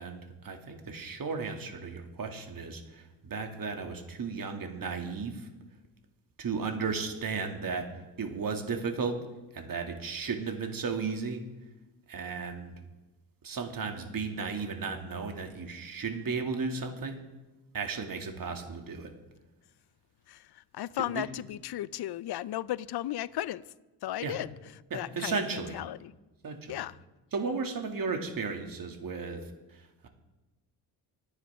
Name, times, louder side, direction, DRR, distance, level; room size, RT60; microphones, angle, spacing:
voice 1, 0.0-5.5 6.4-7.9 8.2-9.2 9.5-11.4 12.1-12.7 13.4-17.2 17.7-19.1 21.0-21.3 24.2-24.4 24.9-25.7 26.4-26.8 27.3-30.1, right 4 dB, 45° right, 2.6 m, -35 dB
voice 2, 20.3-23.6 24.0-24.5 24.9-26.1 26.7-27.0, left 13 dB, 55° left, 0.7 m, -35 dB
27.0 x 9.8 x 3.7 m
hypercardioid pair, 50°, 47 cm